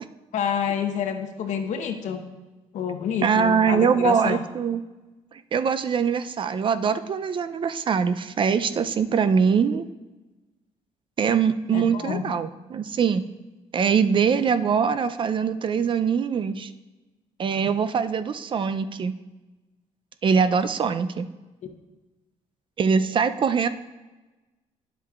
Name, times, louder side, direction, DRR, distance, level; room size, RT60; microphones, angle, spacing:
voice 1, 0.3-2.2 2.7-4.4 11.7-12.2, left 7 dB, 70° left, 6 dB, 0.9 m, -28 dB
voice 2, 3.2-4.8 5.3-9.9 11.2-13.2 13.7-16.7 17.4-19.2 20.2-21.3 22.8-23.7, right 6 dB, 40° right, 11 dB, 0.4 m, -23 dB
10.0 x 7.5 x 2.4 m, 1.2 s
cardioid pair, 90°, 13 cm